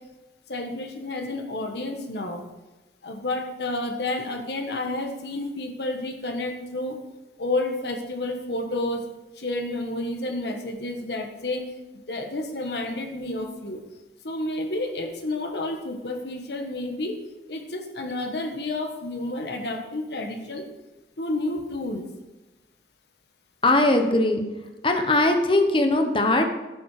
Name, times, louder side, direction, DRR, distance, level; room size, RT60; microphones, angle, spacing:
voice 1, 0.5-2.4 3.0-6.9 7.4-9.0 9.4-11.6 12.1-13.8 14.2-17.1 17.5-20.6 21.2-22.0, left 2 dB, 70° left, 3 dB, 1.4 m, -30 dB
voice 2, 23.6-24.4 24.8-26.5, left 2 dB, 30° left, 5 dB, 1.0 m, -20 dB
11.0 x 7.6 x 4.9 m, 1.1 s
head